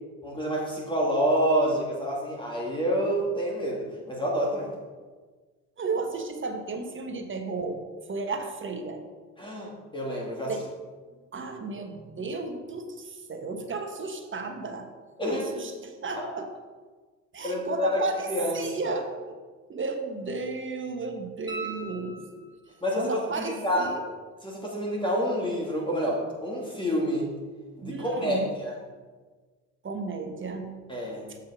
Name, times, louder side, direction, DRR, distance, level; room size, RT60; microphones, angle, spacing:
voice 1, 0.2-4.7 9.4-10.5 15.2-15.7 16.1-16.2 17.4-18.0 18.3-19.0 22.8-23.9 24.4-27.3 27.8-28.7 30.9-31.3, equal, 10° left, -4 dB, 2.3 m, -28 dB
voice 2, 5.8-7.8 8.1-9.0 10.5-10.7 11.3-14.9 15.3-16.5 17.3-19.3 19.7-22.5 22.9-24.0 27.8-28.5 29.8-30.7 31.3-31.4, right 3 dB, 30° right, 5 dB, 1.3 m, -34 dB
sound 1, 21.5-22.8 25.6-25.7, right 4 dB, 10° right, 2.0 m, -40 dB
7.3 x 5.7 x 4.9 m, 1.4 s
hypercardioid pair, 60°, 40 cm